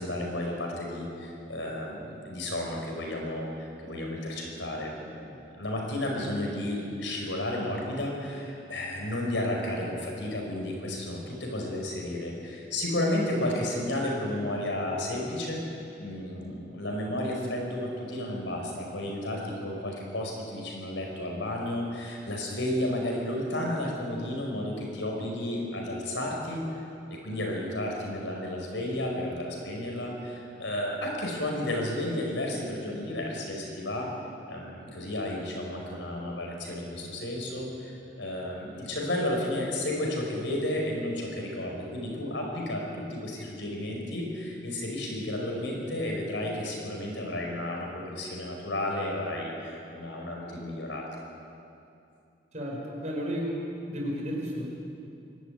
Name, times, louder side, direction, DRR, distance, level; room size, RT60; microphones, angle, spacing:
voice 1, 0.0-15.6 16.0-34.1 34.5-51.0, left 1 dB, 90° left, 0 dB, 5.4 m, -32 dB
voice 2, 52.5-53.6 53.8-54.6, equal, 40° right, -2 dB, 5.4 m, -32 dB
23.0 x 13.0 x 9.7 m, 2.7 s
head